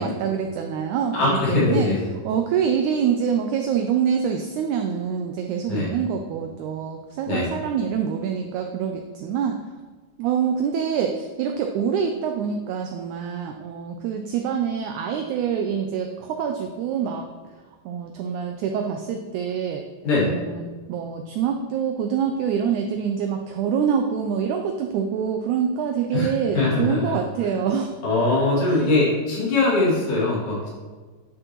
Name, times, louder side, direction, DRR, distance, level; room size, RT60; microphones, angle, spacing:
voice 1, 0.0-1.9 2.2-9.6 10.2-17.3 17.9-19.9 20.2-27.9 28.7-28.9, right 7 dB, 90° right, 4 dB, 1.7 m, -25 dB
voice 2, 1.1-2.0 5.7-5.9 7.2-7.5 20.0-20.3 26.1-27.1 27.5-27.6 28.0-30.7, left 2 dB, 60° left, -7 dB, 3.7 m, -22 dB
10.0 x 6.2 x 3.0 m, 1.4 s
omnidirectional pair, 4.0 m